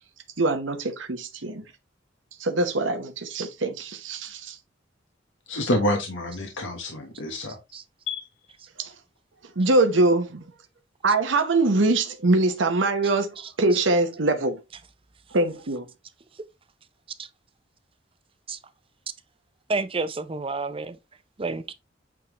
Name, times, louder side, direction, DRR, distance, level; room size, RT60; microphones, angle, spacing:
voice 1, 0.4-1.6 2.4-4.6 8.8-8.9 9.6-10.4 11.0-14.6 15.3-15.9, right 2 dB, 85° right, 1.0 m, -23 dB
voice 2, 5.5-7.6 8.1-8.3, left 1 dB, 85° left, 1.2 m, -27 dB
voice 3, 19.7-21.0 21.4-21.7, right 3 dB, 30° right, 0.6 m, -30 dB
8.6 x 3.7 x 3.0 m
head